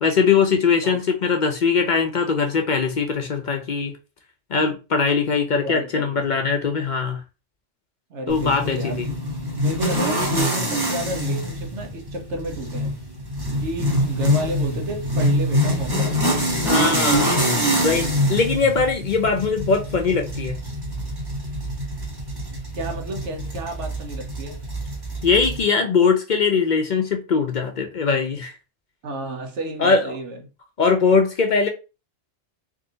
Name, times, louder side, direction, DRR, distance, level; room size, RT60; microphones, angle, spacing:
voice 1, 0.0-3.9 4.5-7.2 8.3-9.1 16.6-17.3 17.8-20.6 25.2-28.6 29.8-30.1 30.8-31.7, left 5 dB, 50° left, 0.7 m, -21 dB
voice 2, 5.6-6.3 8.1-9.1 9.6-13.0 13.6-16.2 22.7-24.6 29.0-30.4, right 1 dB, 80° right, 1.3 m, -31 dB
sound 1, 8.3-25.6, equal, 20° right, 1.1 m, -25 dB
3.7 x 2.8 x 3.8 m
omnidirectional pair, 1.2 m